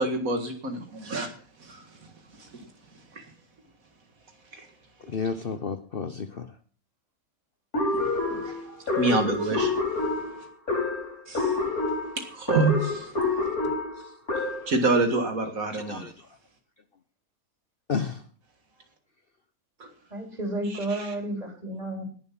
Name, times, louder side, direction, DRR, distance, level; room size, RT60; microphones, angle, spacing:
voice 1, 0.0-1.3 1.6-2.1 2.4-2.7 3.1-3.3 4.5-4.7 7.9-9.8 11.3-11.6 12.2-13.1 14.3-16.0 19.8-19.9 20.9-21.1, right 3 dB, 70° right, 5 dB, 2.3 m, -28 dB
voice 2, 5.1-6.5 15.7-16.3 17.9-18.2, left 5 dB, 45° left, 10 dB, 0.9 m, -31 dB
sound 1, 7.7-14.8, left 3 dB, 80° left, 5.3 m, -28 dB
voice 3, 20.1-22.0, right 1 dB, 25° right, 2 dB, 4.2 m, -31 dB
19.0 x 7.6 x 5.9 m, 0.43 s
omnidirectional pair, 1.5 m